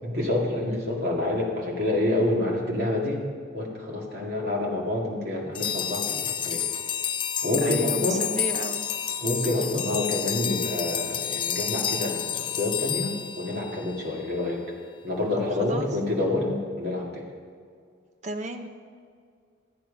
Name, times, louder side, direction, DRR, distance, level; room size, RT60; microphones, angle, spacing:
voice 1, 0.0-3.3 3.5-6.6 7.4-8.2 9.2-14.6 15.0-17.2, left 2 dB, 55° right, -2 dB, 2.2 m, -27 dB
sound 1, 5.5-14.1, left 9 dB, 25° left, 0.4 m, -30 dB
voice 2, 7.6-8.9 15.6-16.0 18.2-18.7, right 2 dB, 40° right, 5 dB, 0.8 m, -33 dB
13.5 x 9.4 x 5.2 m, 2.1 s
head